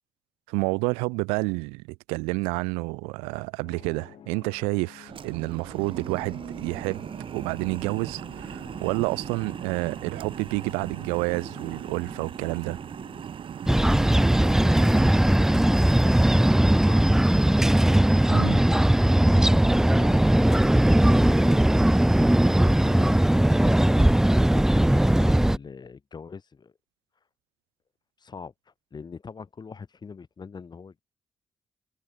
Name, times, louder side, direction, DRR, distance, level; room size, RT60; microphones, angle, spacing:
voice 1, 0.5-7.1 7.3-12.8 18.3-18.6, right 29 dB, 90° right, 0.8 m, -29 dB
sound 1, 3.6-13.2, left 10 dB, 70° left, 2.6 m, -50 dB
sound 2, 5.1-15.1, right 8 dB, 65° right, 2.8 m, -38 dB
sound 3, 13.7-25.6, right 1 dB, 5° right, 0.3 m, -19 dB
voice 2, 15.1-17.6 19.0-20.2 20.4-20.7 21.3-21.9 22.4-26.7 28.2-28.5 28.9-31.0, left 5 dB, 50° left, 5.0 m, -42 dB
hypercardioid pair, 45°, 10 cm